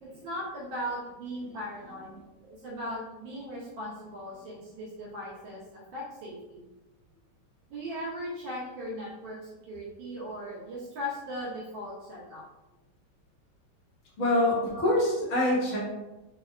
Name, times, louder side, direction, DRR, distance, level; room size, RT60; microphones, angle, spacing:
voice 1, 0.0-2.1 2.4-5.6 5.9-6.7 7.7-12.4 14.7-14.8 15.3-15.4, equal, 80° right, -5 dB, 1.3 m, -38 dB
voice 2, 14.2-15.8, left 1 dB, 50° left, -6 dB, 1.0 m, -25 dB
3.5 x 2.2 x 2.2 m, 1.0 s
omnidirectional pair, 2.1 m